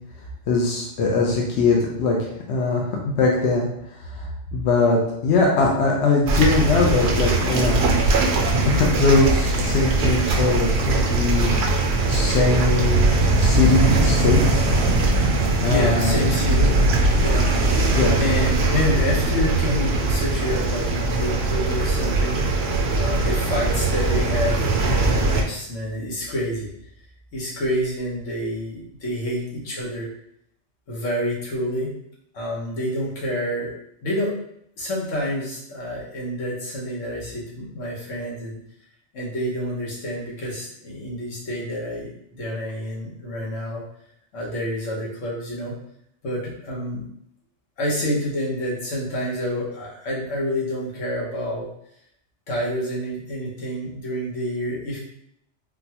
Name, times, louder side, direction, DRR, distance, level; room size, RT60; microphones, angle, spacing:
voice 1, 0.5-3.7 4.0-7.9 8.6-11.6 12.1-14.7 15.6-16.2 17.9-18.2, left 3 dB, 70° left, -1 dB, 0.9 m, -21 dB
sound 1, 6.3-25.4, right 2 dB, 65° right, 0.8 m, -20 dB
voice 2, 15.6-16.7 17.2-26.7 27.3-30.1 30.9-31.9 32.3-34.4 34.8-38.6 39.1-43.8 44.3-45.8 46.2-47.0 47.8-51.7 52.5-55.0, equal, 85° left, -5 dB, 1.4 m, -28 dB
4.0 x 2.2 x 2.8 m, 0.73 s
omnidirectional pair, 1.2 m